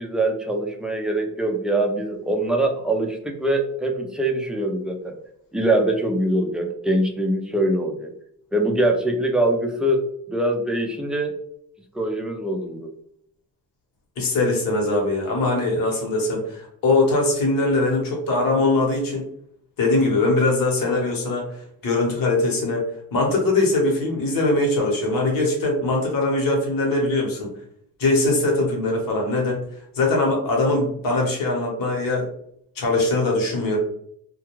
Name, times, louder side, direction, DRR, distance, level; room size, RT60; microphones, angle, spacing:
voice 1, 0.0-5.1 5.5-8.1 8.5-10.0 10.3-11.3 11.9-12.9, right 1 dB, ahead, 2 dB, 0.3 m, -23 dB
voice 2, 14.2-19.3 19.8-27.5 28.0-29.6 29.9-32.3 32.8-33.8, left 2 dB, 60° left, 0 dB, 1.1 m, -21 dB
2.3 x 2.2 x 3.0 m, 0.67 s
cardioid pair, 105°, 37 cm